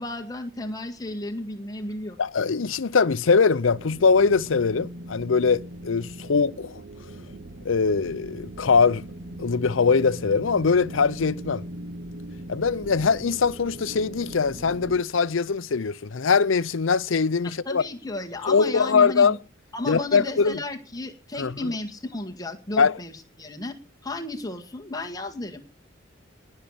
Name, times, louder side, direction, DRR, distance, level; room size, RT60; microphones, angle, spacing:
voice 1, 0.0-2.2 17.4-19.4 19.7-23.1 23.4-23.8 24.0-25.6, left 2 dB, 20° left, 1.8 m, -33 dB
voice 2, 2.2-6.8 7.6-9.0 9.4-11.6 12.5-17.8 18.5-19.3 19.9-20.6 21.4-21.7 22.8-22.9, left 5 dB, 75° left, 0.6 m, -22 dB
sound 1, 3.6-15.0, right 1 dB, 45° right, 1.0 m, -40 dB
19.5 x 6.6 x 7.2 m
head